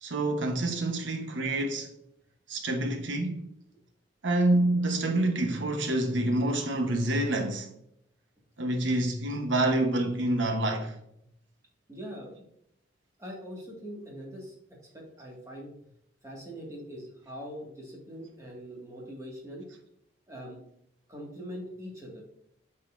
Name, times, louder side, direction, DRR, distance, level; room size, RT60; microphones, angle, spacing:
voice 1, 0.0-1.9 2.5-3.5 4.2-7.7 8.6-10.9, right 1 dB, 75° right, 1.1 m, -27 dB
voice 2, 11.9-12.3 13.2-15.7 16.2-19.7 20.3-20.6 21.1-22.2, equal, 15° right, 1.9 m, -42 dB
8.4 x 5.4 x 2.6 m
head